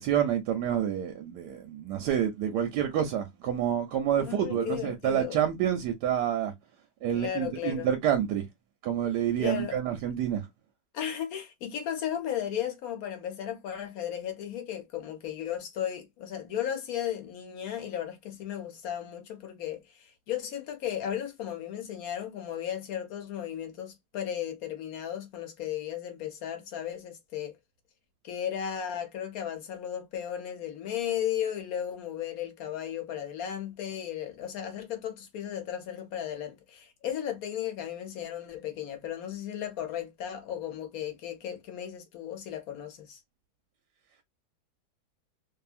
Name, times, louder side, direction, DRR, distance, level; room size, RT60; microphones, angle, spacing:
voice 1, 0.0-6.5 7.0-8.5 8.8-10.5, right 9 dB, 70° right, 1.0 m, -28 dB
voice 2, 4.2-5.4 7.1-7.9 9.4-9.8 10.9-27.5 28.2-43.2, left 10 dB, 65° left, 0.9 m, -35 dB
2.7 x 2.6 x 2.4 m
omnidirectional pair, 2.1 m